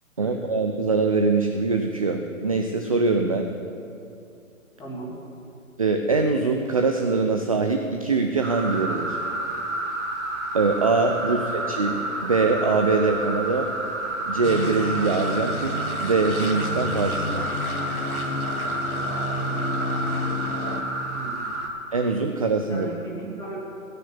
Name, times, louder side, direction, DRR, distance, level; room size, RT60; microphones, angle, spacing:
voice 1, 0.2-3.5 5.8-9.2 10.5-13.7 14.3-17.4 21.9-22.9, right 4 dB, 25° right, 4 dB, 0.4 m, -23 dB
voice 2, 4.8-5.1 11.2-11.4 21.1-21.5 22.7-23.6, right 2 dB, 10° left, -6 dB, 3.1 m, -37 dB
sound 1, 8.4-21.7, right 2 dB, 55° right, 2.4 m, -30 dB
sound 2, 14.4-20.8, left 2 dB, 80° left, 1.5 m, -30 dB
17.0 x 6.6 x 8.6 m, 2.6 s
figure-of-eight pair, 130°, 43 cm